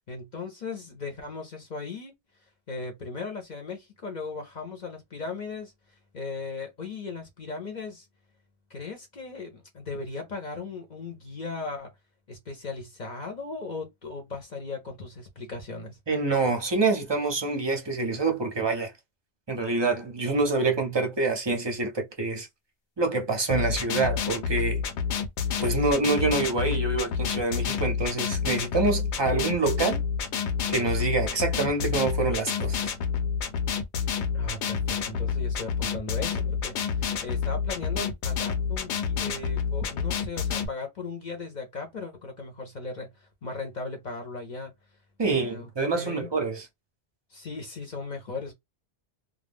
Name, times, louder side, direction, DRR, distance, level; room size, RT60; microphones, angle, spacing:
voice 1, 0.1-2.1 2.7-5.7 6.1-8.1 8.7-11.9 12.3-16.0 34.3-44.7 45.2-45.7 45.9-46.3 47.3-48.5, left 3 dB, 45° left, 0.7 m, -37 dB
voice 2, 16.1-18.9 19.5-22.5 23.0-24.8 25.6-30.0 30.7-32.9 45.2-46.7, right 3 dB, 30° right, 0.5 m, -26 dB
sound 1, 23.5-40.7, left 6 dB, 80° left, 0.9 m, -29 dB
2.3 x 2.0 x 3.4 m
omnidirectional pair, 1.1 m